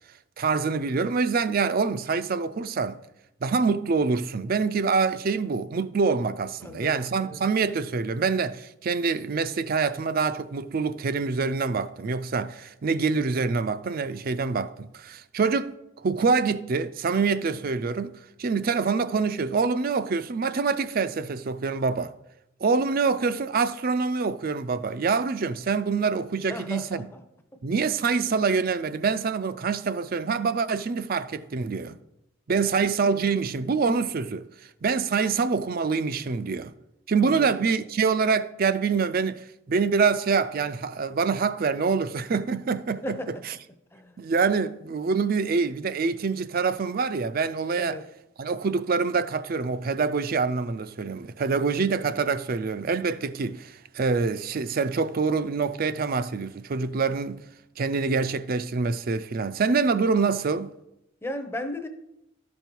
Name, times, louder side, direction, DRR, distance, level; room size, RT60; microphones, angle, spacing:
voice 1, 0.4-3.0 3.4-15.8 16.0-18.1 18.4-22.1 22.6-27.1 27.6-32.0 32.5-34.5 34.8-36.7 37.1-43.2 43.4-43.5 44.2-48.0 48.4-57.4 57.8-60.7, right 4 dB, 45° right, 0.4 m, -25 dB
voice 2, 6.6-7.4 26.5-27.2 27.5-27.6 37.2-37.5 43.0-43.4 43.9-44.2 47.8-48.1 61.2-61.9, left 1 dB, 10° left, 0.6 m, -36 dB
12.5 x 5.3 x 4.5 m
head